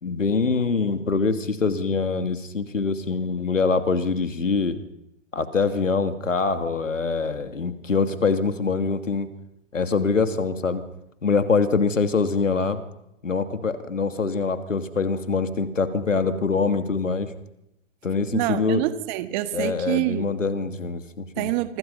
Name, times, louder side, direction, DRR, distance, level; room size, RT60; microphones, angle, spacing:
voice 1, 0.0-4.8 5.3-9.3 9.7-10.8 11.2-12.8 13.2-17.3 18.0-18.8 19.5-21.5, left 4 dB, 80° left, 9 dB, 2.7 m, -24 dB
voice 2, 18.3-20.3 21.4-21.8, right 16 dB, 35° right, 11 dB, 1.9 m, -26 dB
26.5 x 25.0 x 5.6 m, 0.84 s
figure-of-eight pair, 115°, 37 cm